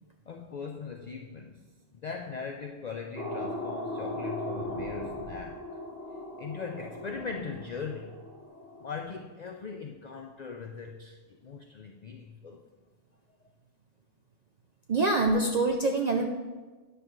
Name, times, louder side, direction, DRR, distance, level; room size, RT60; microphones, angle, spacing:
voice 1, 0.3-5.8 6.4-8.2 8.8-12.7, left 5 dB, 65° left, 3 dB, 0.4 m, -40 dB
sound 1, 3.2-9.0, left 1 dB, 15° left, 0.8 m, -38 dB
voice 2, 14.9-16.3, right 3 dB, 60° right, 2 dB, 0.4 m, -25 dB
9.6 x 6.4 x 3.0 m, 1.3 s
omnidirectional pair, 1.3 m